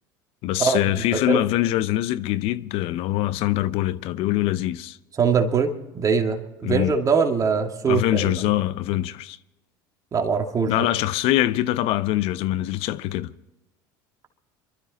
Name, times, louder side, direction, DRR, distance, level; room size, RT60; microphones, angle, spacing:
voice 1, 0.4-5.0 6.6-6.9 7.9-9.4 10.7-13.3, left 14 dB, 60° left, 0.7 m, -23 dB
voice 2, 5.2-8.3 10.1-10.9, right 5 dB, 30° right, 2.2 m, -22 dB
24.0 x 13.0 x 4.1 m
hypercardioid pair, 85°, 11 cm